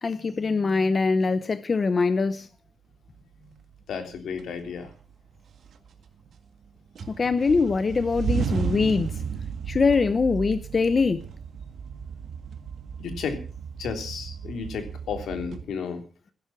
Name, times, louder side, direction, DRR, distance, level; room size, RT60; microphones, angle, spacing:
voice 1, 0.0-2.5 7.2-9.2 9.7-11.2, left 4 dB, 30° left, 0.8 m, -23 dB
sound 1, 3.7-3.8 4.4-5.1 5.5-6.6 7.0-15.6, right 6 dB, 60° right, 1.8 m, -34 dB
voice 2, 3.9-4.9 13.0-13.4 13.8-16.0, left 6 dB, 75° left, 3.4 m, -33 dB
17.0 x 10.5 x 6.0 m
wide cardioid pair, 145°, 0 cm